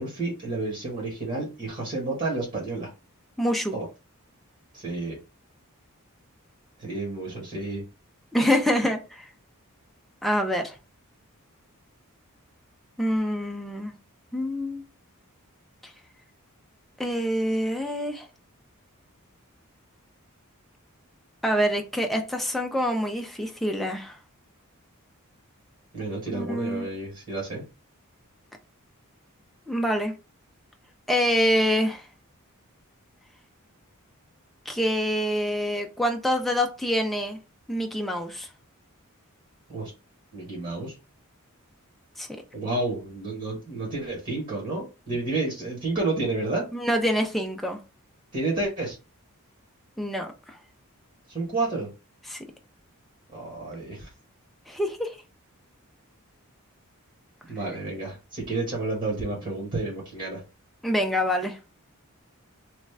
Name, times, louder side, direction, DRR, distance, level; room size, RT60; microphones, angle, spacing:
voice 1, 0.0-2.9 3.7-3.8 4.7-5.2 6.8-7.8 25.9-27.6 39.7-39.9 40.3-40.9 42.5-46.6 48.3-49.0 51.3-51.9 53.3-54.1 57.5-60.4, right 2 dB, 40° right, 1.4 m, -30 dB
voice 2, 3.4-3.7 8.3-9.3 10.2-10.8 13.0-13.9 14.3-14.8 15.8-15.9 17.0-18.3 21.4-24.2 26.3-26.9 29.7-30.1 31.1-32.1 34.7-37.4 37.7-38.5 42.2-42.3 46.7-47.8 50.0-50.6 52.3-52.4 54.7-55.2 60.8-61.6, equal, ahead, 0.4 m, -26 dB
3.1 x 2.4 x 3.4 m
head